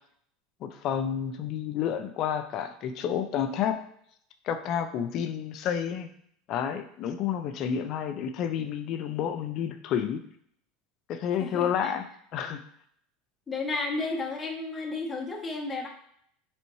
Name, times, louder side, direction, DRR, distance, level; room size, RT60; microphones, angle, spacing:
voice 1, 0.6-3.8 4.4-6.1 6.5-10.2 11.1-12.1 12.3-12.6, left 8 dB, 50° left, 8 dB, 0.4 m, -30 dB
voice 2, 11.4-11.9 13.5-15.9, left 3 dB, 15° left, 0 dB, 0.8 m, -32 dB
4.2 x 3.5 x 3.0 m, 0.67 s
supercardioid pair, 130°, 0 cm